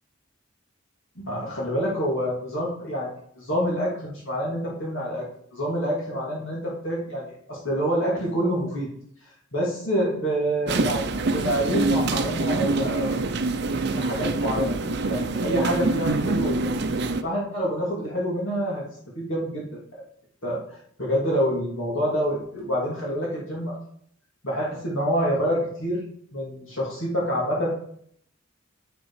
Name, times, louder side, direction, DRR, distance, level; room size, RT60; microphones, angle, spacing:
voice 1, 1.2-8.9 9.5-11.0 11.3-13.2 13.9-16.7 17.2-18.8 19.1-19.7 20.4-20.6 21.0-23.8 24.4-26.0 26.3-27.7, equal, 70° left, -4 dB, 2.8 m, -27 dB
sound 1, 10.7-17.2, right 3 dB, 50° right, 0.6 m, -25 dB
7.9 x 6.2 x 4.9 m, 0.66 s
head